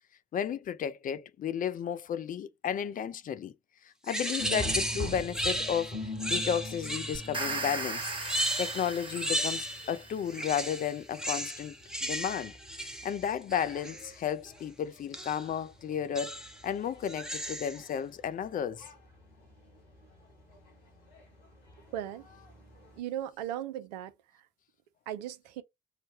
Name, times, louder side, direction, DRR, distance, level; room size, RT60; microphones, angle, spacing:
voice 1, 0.3-3.5 4.0-8.1 8.6-11.8 12.0-12.5 12.8-18.9, left 8 dB, 40° left, 0.4 m, -33 dB
sound 1, 4.1-7.4 8.0-10.0 10.3-14.1 15.1-15.5 16.1-16.6 17.0-17.8, equal, 5° right, 0.8 m, -35 dB
sound 2, 4.4-23.0, left 1 dB, 85° left, 1.4 m, -45 dB
sound 3, 7.1-10.3, right 3 dB, 25° right, 1.1 m, -37 dB
voice 2, 21.9-22.3 23.0-24.1 25.1-25.6, right 11 dB, 80° right, 0.5 m, -37 dB
3.2 x 2.1 x 2.7 m
hypercardioid pair, 45°, 21 cm